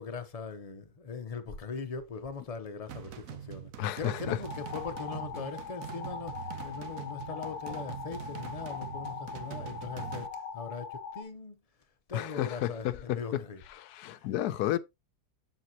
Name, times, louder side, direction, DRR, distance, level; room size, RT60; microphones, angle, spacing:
voice 1, 0.0-3.7 4.0-11.6 12.1-13.6 14.1-14.3, left 4 dB, 30° left, 0.7 m, -40 dB
sound 1, 2.9-10.3, right 10 dB, 65° right, 1.1 m, -43 dB
voice 2, 3.8-4.4 12.1-13.4 13.8-14.8, left 13 dB, 80° left, 1.1 m, -32 dB
sound 2, 4.4-11.2, left 5 dB, 55° left, 1.2 m, -41 dB
7.6 x 7.2 x 2.9 m
omnidirectional pair, 1.7 m